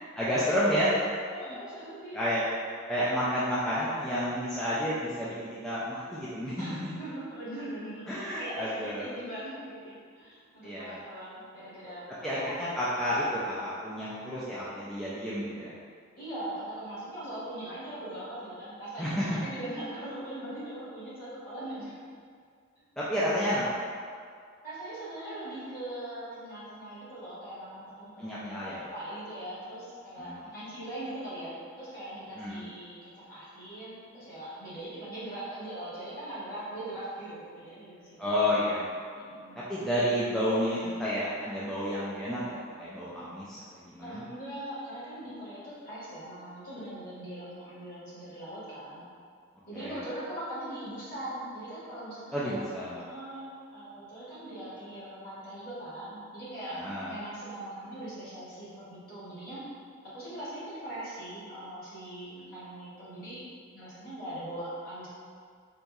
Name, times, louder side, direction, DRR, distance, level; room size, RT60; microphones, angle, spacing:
voice 1, 0.2-0.9 1.5-1.6 2.1-2.5 2.9-6.5 8.1-9.1 10.6-11.0 12.2-15.7 19.0-19.2 23.0-23.6 28.2-28.8 30.2-30.4 32.4-32.6 38.2-38.8 39.7-43.6 43.8-44.2 49.7-50.0 52.3-52.9 56.8-57.1, equal, ahead, -10 dB, 0.3 m, -30 dB
voice 2, 1.3-2.2 6.6-8.1 8.4-12.9 16.2-22.0 24.6-38.8 39.1-39.6 44.0-49.0 49.7-52.6 52.9-59.6 60.0-63.4 63.7-65.1, right 1 dB, 45° left, -11 dB, 1.5 m, -41 dB
4.0 x 2.7 x 2.3 m, 2.1 s
head